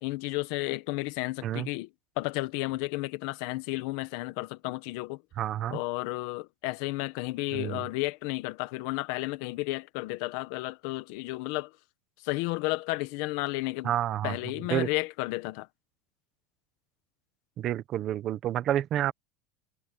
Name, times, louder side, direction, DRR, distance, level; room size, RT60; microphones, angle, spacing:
voice 1, 0.0-1.9 2.2-5.2 5.7-11.7 12.2-13.9 14.2-15.7, left 21 dB, 55° left, 1.3 m, -32 dB
voice 2, 5.4-5.8 7.5-7.8 13.8-14.4 14.7-14.9 17.6-19.1, right 11 dB, 30° right, 1.1 m, -29 dB
supercardioid pair, 175°, 0 cm